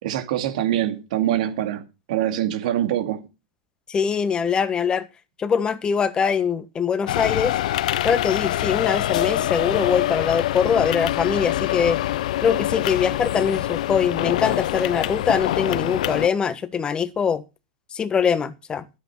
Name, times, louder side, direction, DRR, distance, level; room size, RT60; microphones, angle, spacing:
voice 1, 0.0-1.8 2.1-3.2, right 12 dB, 70° right, 2.4 m, -24 dB
voice 2, 3.9-5.1 5.4-7.6 8.0-12.0 12.4-17.4 17.9-18.8, left 6 dB, 25° left, 1.3 m, -23 dB
sound 1, 7.1-16.3, left 14 dB, 80° left, 0.5 m, -25 dB
12.5 x 8.3 x 5.9 m
supercardioid pair, 120°, 4 cm